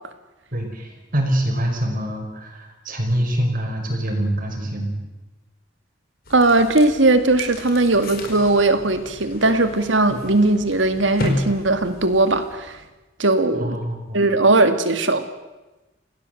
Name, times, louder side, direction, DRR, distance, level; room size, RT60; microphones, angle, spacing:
voice 1, 0.5-5.0 10.1-10.2 13.5-14.3, right 1 dB, 50° right, 2 dB, 5.1 m, -25 dB
sound 1, 6.3-12.9, left 1 dB, 55° left, 4.7 m, -32 dB
voice 2, 6.3-12.8 13.2-13.8 14.1-15.2, right 2 dB, 75° right, 9 dB, 2.2 m, -18 dB
27.5 x 17.5 x 7.9 m, 1.1 s
head